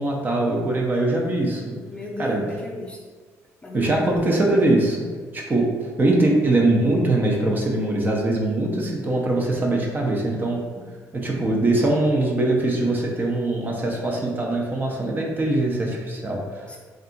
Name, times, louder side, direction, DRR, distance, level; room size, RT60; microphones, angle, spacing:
voice 1, 0.0-1.7 2.2-2.4 3.7-5.0 5.3-5.7 6.0-10.6 11.1-16.7, right 2 dB, 30° right, -1 dB, 0.5 m, -22 dB
voice 2, 1.9-3.1 3.6-4.4 16.7-16.8, left 2 dB, 15° left, -2 dB, 0.6 m, -36 dB
2.7 x 2.3 x 2.5 m, 1.5 s
supercardioid pair, 75°, 7 cm